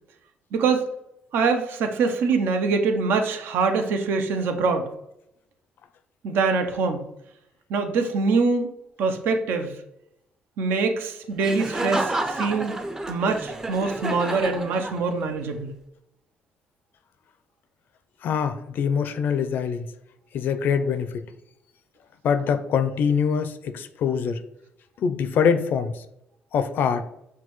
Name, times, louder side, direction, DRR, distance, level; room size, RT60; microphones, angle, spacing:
voice 1, 0.5-0.8 1.3-4.9 6.2-7.0 7.7-8.7 9.0-9.8 10.6-15.7, right 4 dB, 80° right, 6 dB, 0.6 m, -24 dB
Laughter, 11.4-15.3, right 2 dB, 15° right, 0.5 m, -30 dB
voice 2, 18.2-19.9 20.3-21.2 22.2-24.4 25.0-26.0 26.5-27.0, left 6 dB, 65° left, 11 dB, 0.4 m, -24 dB
5.9 x 2.2 x 3.0 m, 0.81 s
cardioid pair, 85°, 4 cm